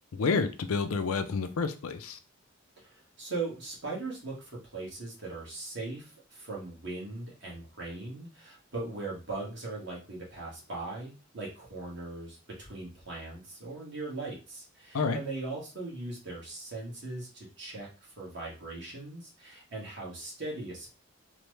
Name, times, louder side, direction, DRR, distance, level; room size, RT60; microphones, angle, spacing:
voice 1, 0.1-2.2 14.9-15.2, left 4 dB, 80° left, 9 dB, 0.5 m, -29 dB
voice 2, 2.8-17.9 18.2-20.9, right 3 dB, 55° right, -4 dB, 1.4 m, -39 dB
3.2 x 2.1 x 3.2 m, 0.33 s
head